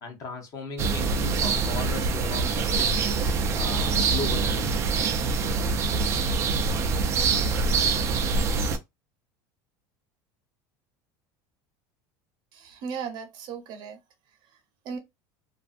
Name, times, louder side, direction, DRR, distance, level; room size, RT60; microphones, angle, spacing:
voice 1, 0.0-3.2 3.5-5.0, left 3 dB, 35° left, 0.8 m, -37 dB
sound 1, 0.8-8.8, right 4 dB, 30° right, 0.4 m, -25 dB
voice 2, 12.5-14.0 14.3-15.0, right 6 dB, 45° right, 0.7 m, -37 dB
2.5 x 2.4 x 2.4 m
cardioid pair, 160°, 10 cm